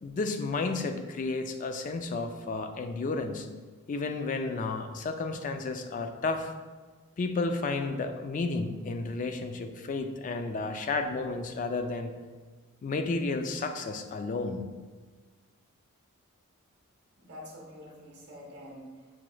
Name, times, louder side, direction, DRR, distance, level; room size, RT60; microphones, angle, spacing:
voice 1, 0.0-3.5 3.9-6.5 7.2-12.1 12.8-14.7, left 3 dB, 35° left, 6 dB, 0.3 m, -32 dB
voice 2, 17.2-19.2, left 1 dB, 50° right, -3 dB, 0.9 m, -47 dB
5.9 x 3.1 x 2.3 m, 1.4 s
head